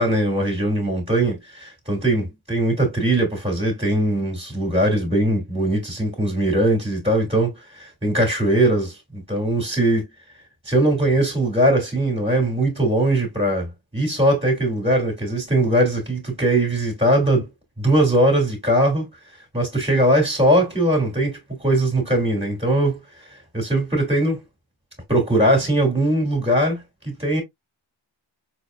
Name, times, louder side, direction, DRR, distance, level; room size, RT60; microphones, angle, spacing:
voice 1, 0.0-10.1 10.7-17.5 17.8-19.1 19.5-23.0 23.5-24.4 25.1-27.4, right 1 dB, 10° right, 2.6 m, -20 dB
4.5 x 4.2 x 2.3 m
wide cardioid pair, 50°, 50 cm